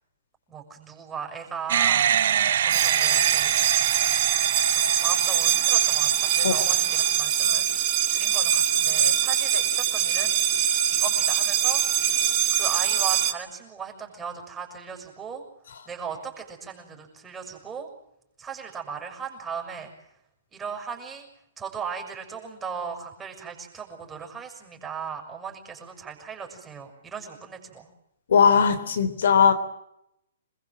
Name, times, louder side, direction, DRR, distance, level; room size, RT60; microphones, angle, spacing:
voice 1, 0.5-2.1 2.6-3.5 4.7-10.3 10.9-12.0 12.5-15.4 15.9-17.9 18.4-19.9 20.5-21.3 21.6-27.9, right 6 dB, 10° right, 2 dB, 6.5 m, -37 dB
sound 1, 1.7-7.2, right 9 dB, 60° right, 0.9 m, -26 dB
sound 2, 2.7-13.3, right 11 dB, 30° right, 2.4 m, -23 dB
voice 2, 28.3-29.5, left 6 dB, 65° left, 8 dB, 3.4 m, -19 dB
27.5 x 21.5 x 7.7 m, 0.79 s
hypercardioid pair, 165°, 0 cm